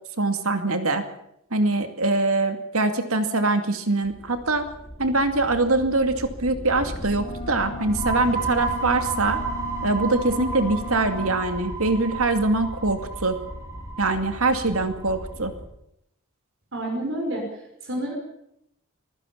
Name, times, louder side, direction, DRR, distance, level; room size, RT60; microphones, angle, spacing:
voice 1, 0.2-1.0 1.5-4.7 5.0-9.4 9.8-13.4 14.0-15.5, right 2 dB, 75° right, 7 dB, 2.3 m, -23 dB
sound 1, 4.0-15.6, equal, 25° left, 3.1 m, -38 dB
sound 2, 7.0-11.4, left 1 dB, 70° left, 5.0 m, -38 dB
sound 3, 7.7-15.2, right 4 dB, 15° right, 4.5 m, -33 dB
voice 2, 16.7-17.5 17.8-18.1, right 1 dB, 60° right, 0 dB, 5.9 m, -28 dB
24.0 x 16.0 x 7.3 m, 0.78 s
head